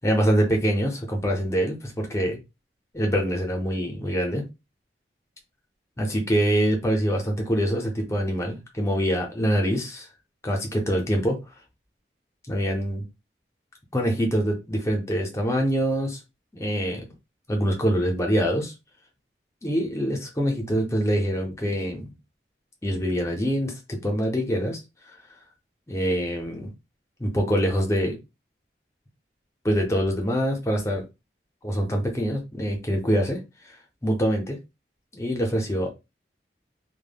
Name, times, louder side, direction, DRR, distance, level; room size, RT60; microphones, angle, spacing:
voice 1, 0.0-2.4 2.9-4.4 6.0-10.1 10.4-11.4 12.5-13.1 13.9-16.2 16.5-17.1 17.5-18.7 19.6-22.1 22.8-23.7 24.0-24.8 25.9-26.7 27.2-28.2 29.6-31.0 31.6-33.4 34.0-34.6 35.1-35.9, equal, 15° left, 2 dB, 0.6 m, -24 dB
2.1 x 2.1 x 3.4 m, 0.25 s
head